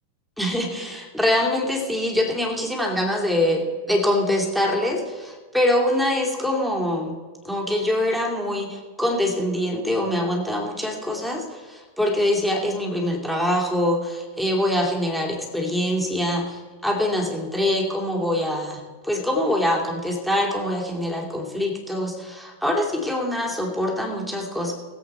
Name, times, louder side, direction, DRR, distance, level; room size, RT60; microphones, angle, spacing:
voice 1, 0.4-7.2 7.4-24.7, left 1 dB, ahead, 0 dB, 2.6 m, -24 dB
21.0 x 8.0 x 4.4 m, 1.5 s
figure-of-eight pair, 90°, 0 cm